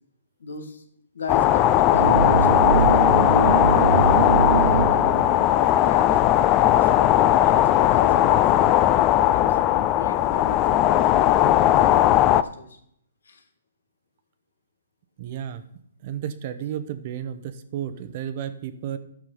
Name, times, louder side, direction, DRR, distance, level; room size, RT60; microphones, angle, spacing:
voice 1, 0.4-0.8 1.1-6.2 6.7-8.8 9.1-11.0 11.3-12.8 13.3-13.4, left 5 dB, 80° left, 7 dB, 1.7 m, -37 dB
sound 1, 1.3-12.4, left 12 dB, 20° left, 0.3 m, -18 dB
sound 2, 1.9-5.4, right 7 dB, 70° right, 0.3 m, -23 dB
voice 2, 15.2-15.6 16.0-19.0, right 9 dB, 35° right, 12 dB, 0.8 m, -32 dB
10.5 x 6.2 x 5.5 m, 0.69 s
hypercardioid pair, 160°, 0 cm